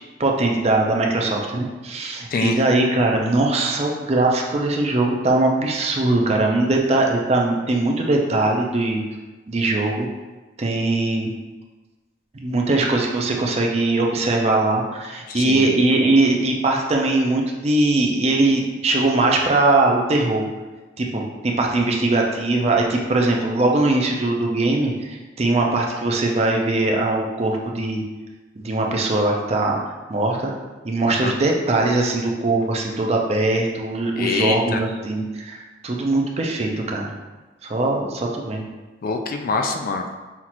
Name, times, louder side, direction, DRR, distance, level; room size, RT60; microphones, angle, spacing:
voice 1, 0.2-9.0 9.5-10.1 10.6-11.3 12.4-20.5 21.0-28.0 28.6-29.8 30.1-30.5 30.8-37.1 37.6-38.7, right 2 dB, 35° right, 0 dB, 0.5 m, -21 dB
voice 2, 2.3-2.6 15.3-15.6 31.1-31.4 34.2-34.8 39.0-40.1, left 4 dB, 50° left, 5 dB, 0.3 m, -24 dB
5.7 x 2.5 x 2.9 m, 1.2 s
head